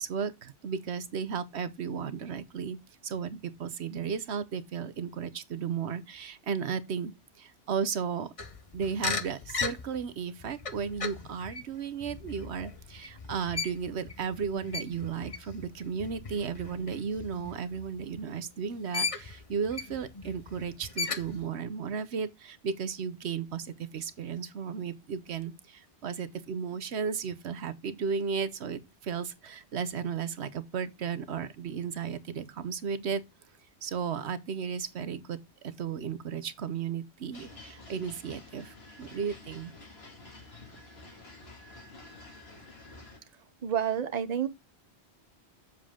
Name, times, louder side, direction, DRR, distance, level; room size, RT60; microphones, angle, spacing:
voice 1, 0.0-2.8 3.0-7.1 7.4-8.3 8.7-33.2 33.8-39.7, right 6 dB, 75° right, 1.2 m, -34 dB
sound 1, 8.4-18.5 18.9-21.5, left 4 dB, 35° left, 0.8 m, -38 dB
sound 2, 37.3-43.2, left 2 dB, 65° left, 2.5 m, -50 dB
voice 2, 43.6-44.5, right 9 dB, 40° right, 0.8 m, -29 dB
7.6 x 7.3 x 3.6 m
omnidirectional pair, 1.1 m